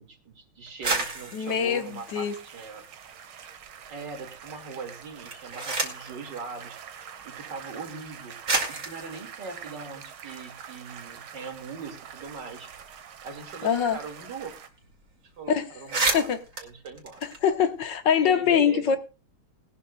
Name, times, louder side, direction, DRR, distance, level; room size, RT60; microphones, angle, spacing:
voice 1, 0.0-2.9 3.9-6.8 7.2-8.4 8.7-12.7 13.2-14.5 15.2-16.3 16.6-17.2 18.2-19.0, right 5 dB, 55° right, 2.8 m, -40 dB
sound 1, 0.7-3.2 3.6-4.3 5.1-6.2 7.2-7.3 8.0-8.1 8.4-10.8 11.1-11.2 11.5-14.1 14.4-14.5 14.8-15.0 15.4-15.5 15.7-17.9, right 3 dB, 40° right, 2.6 m, -33 dB
voice 2, 1.3-2.3 13.6-14.0 15.5-15.6 16.1-16.4 17.2-19.0, left 8 dB, 60° left, 1.7 m, -23 dB
sound 2, 1.4-14.7, right 8 dB, 75° right, 2.0 m, -45 dB
20.0 x 12.0 x 2.3 m
omnidirectional pair, 2.4 m